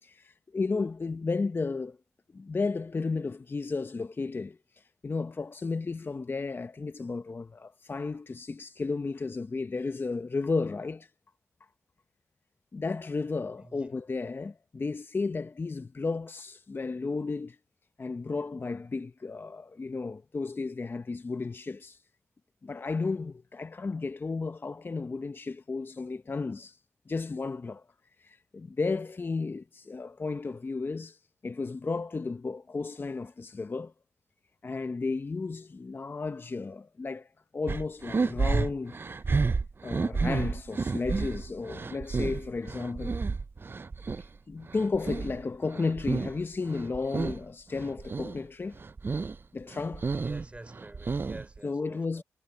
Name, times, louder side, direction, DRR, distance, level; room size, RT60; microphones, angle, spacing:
voice 1, 0.0-2.0 2.3-11.1 12.7-17.6 18.0-22.0 22.6-26.8 27.1-27.8 28.2-31.2 31.4-33.9 34.6-37.3 37.5-39.0 39.8-43.2 44.5-48.8 49.5-50.1 51.6-52.2, left 4 dB, 40° left, 0.7 m, -33 dB
voice 2, 13.6-13.9 50.1-52.2, right 2 dB, 20° right, 3.4 m, -48 dB
sound 1, 37.7-44.3 44.6-46.4 46.7-47.4 47.8-48.4 48.7-49.4 49.7-51.6, right 4 dB, 40° right, 0.5 m, -31 dB
cardioid pair, 45°, 6 cm